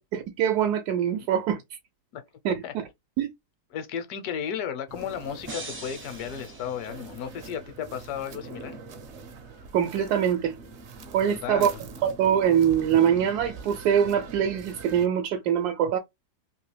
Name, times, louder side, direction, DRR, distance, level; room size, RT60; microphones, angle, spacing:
voice 1, 0.1-1.6 2.4-2.8 3.2-3.3 9.7-10.5 11.1-11.7 12.0-16.0, right 9 dB, 80° right, 1.1 m, -23 dB
voice 2, 3.7-8.8 11.3-11.8, left 8 dB, 75° left, 1.2 m, -34 dB
sound 1, 4.9-15.1, right 4 dB, 55° right, 0.8 m, -43 dB
sound 2, 5.4-7.6, right 2 dB, 15° right, 0.4 m, -42 dB
3.1 x 2.8 x 3.2 m
omnidirectional pair, 1.7 m